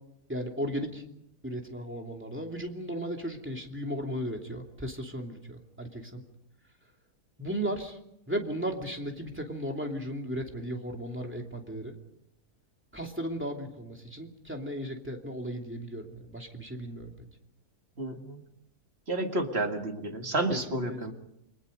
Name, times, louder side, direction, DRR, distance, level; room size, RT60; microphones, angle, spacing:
voice 1, 0.3-1.0 1.4-6.2 7.4-8.0 8.3-11.9 12.9-17.1 20.5-21.1, equal, 5° right, 2 dB, 2.8 m, -35 dB
voice 2, 18.0-18.4 19.1-21.1, right 2 dB, 40° right, 4 dB, 2.2 m, -31 dB
29.5 x 22.0 x 5.3 m, 0.76 s
omnidirectional pair, 1.7 m